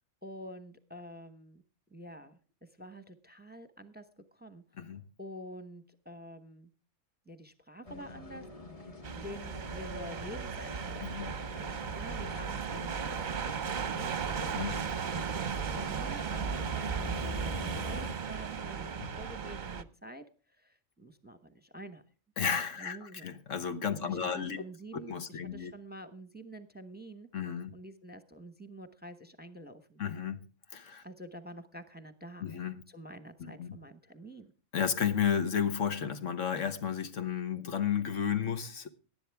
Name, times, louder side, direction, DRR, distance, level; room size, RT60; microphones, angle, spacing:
voice 1, 0.2-1.6 1.9-6.7 7.3-13.5 13.9-14.4 14.9-15.4 15.7-22.0 22.8-23.3 23.9-27.3 27.7-30.0 31.0-32.5 32.9-34.5, equal, 10° right, 0.9 m, -48 dB
sound 1, 7.8-18.1, equal, 30° left, 1.2 m, -45 dB
sound 2, 9.0-19.8, right 6 dB, 45° right, 0.8 m, -36 dB
voice 2, 11.0-11.3 14.4-14.9 19.0-19.2 22.4-24.6 24.9-25.7 27.3-27.7 30.0-31.0 32.4-32.8 33.4-33.8 34.7-38.9, left 7 dB, 75° left, 1.5 m, -33 dB
18.5 x 11.5 x 3.5 m
omnidirectional pair, 1.3 m